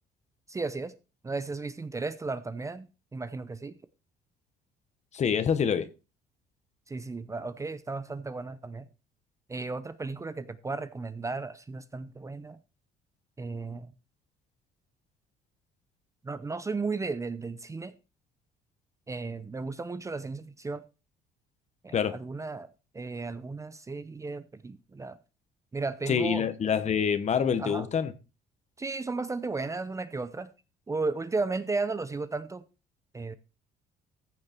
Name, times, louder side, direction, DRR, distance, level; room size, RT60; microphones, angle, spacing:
voice 1, 0.5-0.9 1.2-3.8 6.9-8.9 9.5-12.6 13.4-13.9 16.2-17.9 19.1-20.8 21.8-25.2 25.7-26.4 27.6-27.9 28.8-30.5 30.9-32.6 33.1-33.3, right 3 dB, 20° right, 0.7 m, -34 dB
voice 2, 5.1-5.9 21.9-22.2 26.1-28.1, left 7 dB, 40° left, 1.3 m, -26 dB
14.5 x 6.5 x 4.4 m
cardioid pair, 110°, 17 cm